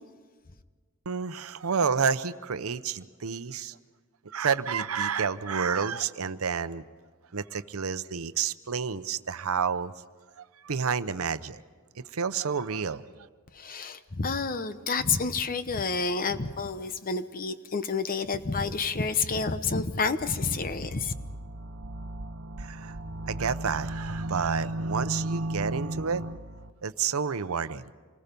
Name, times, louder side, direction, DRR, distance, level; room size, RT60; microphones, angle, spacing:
voice 1, 1.1-3.8 4.2-6.8 7.3-9.9 10.4-11.6 12.0-13.3 22.6-23.0 23.3-26.2 26.8-27.8, right 6 dB, 85° right, 13 dB, 0.7 m, -30 dB
voice 2, 13.5-21.1, left 4 dB, 45° left, 11 dB, 0.9 m, -29 dB
sound 1, 20.4-26.7, right 1 dB, 60° right, 0.8 m, -35 dB
27.5 x 19.5 x 5.3 m, 1.5 s
head